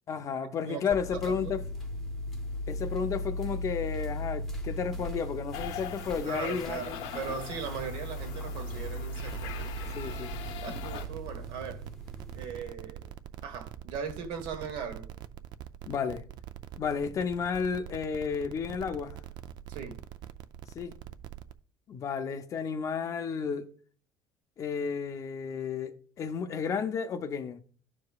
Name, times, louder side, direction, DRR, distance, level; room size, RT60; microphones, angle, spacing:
voice 1, 0.1-1.6 2.7-7.1 9.9-10.4 15.9-16.2 16.8-19.2 20.7-20.9 21.9-23.7 24.6-27.6, left 6 dB, 35° left, 0.6 m, -32 dB
sound 1, 0.9-12.5, equal, 5° left, 0.8 m, -38 dB
sound 2, 5.5-11.1, left 9 dB, 90° left, 0.9 m, -42 dB
voice 2, 6.2-9.9 10.6-11.8 12.3-13.1 13.4-15.1 19.7-20.0, right 6 dB, 70° right, 1.4 m, -39 dB
sound 3, 9.0-21.5, right 11 dB, 50° right, 0.4 m, -45 dB
13.0 x 4.8 x 2.3 m
cardioid pair, 150°, 9 cm